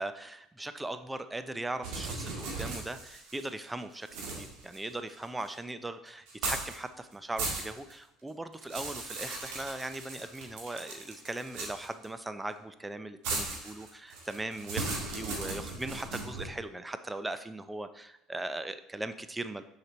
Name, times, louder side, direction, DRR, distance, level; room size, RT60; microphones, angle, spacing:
voice 1, 0.0-19.6, right 2 dB, 15° right, 11 dB, 0.6 m, -39 dB
sound 1, 1.8-3.6 4.1-5.5 6.3-6.8 7.1-7.9 8.3-12.1 13.2-16.5, right 3 dB, 70° right, 1.8 m, -37 dB
6.5 x 4.9 x 4.2 m, 0.79 s
hypercardioid pair, 65°, 0 cm